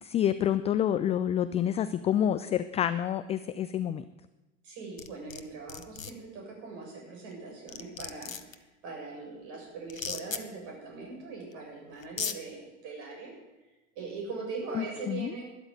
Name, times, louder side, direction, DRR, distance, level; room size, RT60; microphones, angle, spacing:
voice 1, 0.0-4.0 14.7-15.3, left 10 dB, 15° left, 12 dB, 0.4 m, -28 dB
voice 2, 4.6-13.3 14.0-15.5, right 4 dB, 50° right, -1 dB, 7.4 m, -41 dB
sound 1, 5.0-5.4 5.7-6.1 7.3-7.4 7.7-8.5 9.9-10.4 11.5-11.6 12.0-12.4, left 6 dB, 85° left, 1.0 m, -35 dB
13.0 x 10.5 x 9.4 m, 1.1 s
figure-of-eight pair, 85°, 39 cm